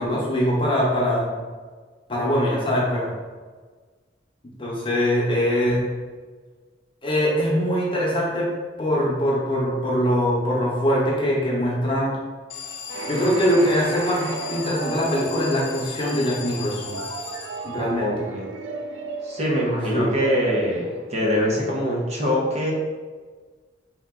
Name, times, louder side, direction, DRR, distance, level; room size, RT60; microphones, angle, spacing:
voice 1, 0.0-1.3 2.1-3.1 4.6-5.8 7.0-8.5 8.8-12.1 13.1-17.0 17.6-18.3 19.9-20.1, equal, 30° left, -4 dB, 0.8 m, -22 dB
Alarm, 12.5-18.1, left 7 dB, 90° left, 0.5 m, -37 dB
sound 1, 12.9-21.6, right 3 dB, 80° right, 0.3 m, -35 dB
voice 2, 17.9-18.5 19.2-22.7, equal, 35° right, -4 dB, 0.8 m, -23 dB
3.6 x 2.9 x 3.6 m, 1.5 s
head